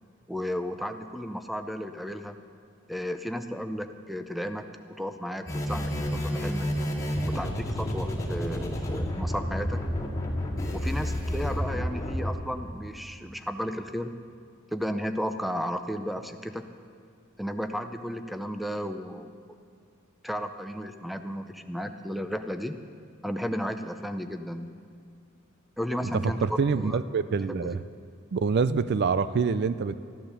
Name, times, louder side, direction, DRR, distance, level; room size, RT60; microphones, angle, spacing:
voice 1, 0.3-2.4 2.9-6.7 7.3-9.9 10.7-14.2 14.7-16.7 17.4-19.3 20.2-22.8 23.2-24.7 25.8-27.0 27.5-27.8, equal, ahead, 8 dB, 0.6 m, -34 dB
sound 1, 5.4-12.3, equal, 15° left, 2.1 m, -30 dB
voice 2, 26.0-27.8 28.3-29.9, right 5 dB, 55° right, 13 dB, 0.4 m, -26 dB
13.5 x 11.5 x 6.8 m, 2.3 s
head